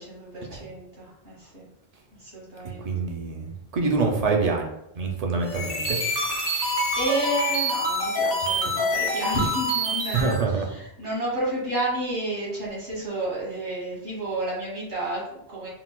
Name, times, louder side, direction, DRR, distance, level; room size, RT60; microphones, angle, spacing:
voice 1, 0.0-1.7 2.1-2.9 6.4-10.3 10.7-15.7, right 1 dB, 85° right, -5 dB, 1.7 m, -31 dB
voice 2, 2.8-6.0 10.1-10.7, right 4 dB, 55° right, 1 dB, 0.4 m, -26 dB
sound 1, 5.4-10.4, equal, 50° left, 1.1 m, -26 dB
3.8 x 2.3 x 2.2 m, 0.84 s
omnidirectional pair, 1.1 m